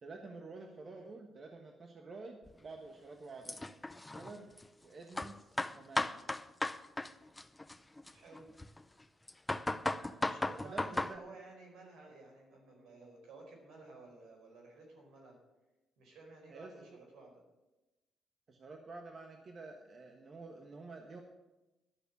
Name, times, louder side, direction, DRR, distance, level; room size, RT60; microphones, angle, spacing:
voice 1, 0.0-3.6 4.1-4.5 4.8-6.2 9.8-10.3 10.6-11.2 16.5-17.0 18.5-21.2, right 3 dB, 45° right, 3 dB, 1.4 m, -49 dB
sound 1, 2.5-2.6 3.4-4.6 5.2-7.1 7.4-8.8 9.3-11.1, left 2 dB, 10° left, 0.5 m, -36 dB
voice 2, 8.1-8.5 10.3-15.4 16.0-17.4, right 3 dB, 80° right, 0 dB, 4.9 m, -54 dB
12.0 x 6.5 x 8.4 m, 1.0 s
cardioid pair, 90°, 0 cm